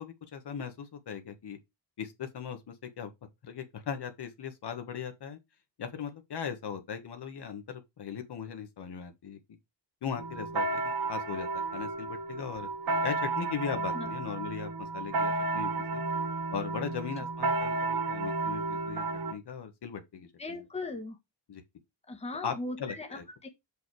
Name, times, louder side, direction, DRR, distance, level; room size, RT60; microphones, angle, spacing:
voice 1, 0.0-1.6 2.0-3.1 3.4-5.4 5.8-9.4 10.0-12.7 13.0-16.0 16.5-19.0 19.3-20.6 21.5-21.6 22.4-23.2, left 7 dB, 65° left, 1.5 m, -38 dB
sound 1, 10.2-19.3, right 3 dB, 55° right, 1.1 m, -32 dB
voice 2, 20.4-21.2 22.1-23.1 23.4-23.5, left 2 dB, 15° left, 1.3 m, -38 dB
6.6 x 5.2 x 4.8 m
wide cardioid pair, 160°, 43 cm